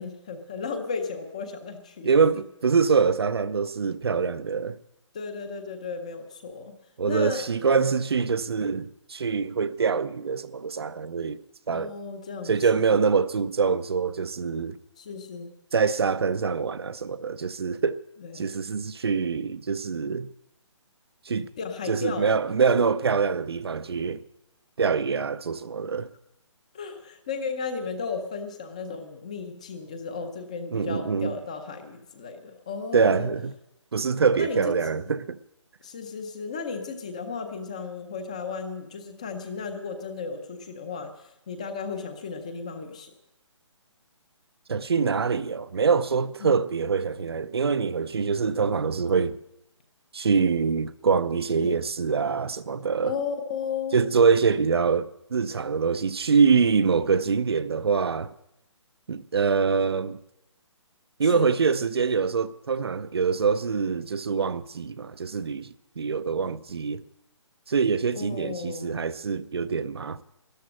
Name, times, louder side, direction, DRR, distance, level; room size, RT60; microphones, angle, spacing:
voice 1, 0.0-2.1 5.1-6.8 7.0-7.7 11.7-12.5 12.9-13.0 15.0-15.5 18.2-18.5 21.6-22.4 26.7-33.3 34.4-34.7 35.8-43.1 46.4-46.5 51.6-51.8 53.0-54.0 61.3-61.5 68.2-69.1, left 5 dB, 15° left, 0.6 m, -34 dB
voice 2, 2.0-4.8 7.0-11.4 11.7-11.9 12.4-14.8 15.7-18.0 18.3-20.3 21.3-21.5 21.9-24.2 24.8-26.1 30.7-31.4 32.9-33.5 33.9-35.4 44.7-49.4 50.1-53.1 53.9-58.3 59.1-60.2 61.2-65.7 66.0-67.0 67.7-70.2, right 5 dB, 55° right, 0.5 m, -24 dB
13.0 x 11.5 x 7.5 m
hypercardioid pair, 175°, 16 cm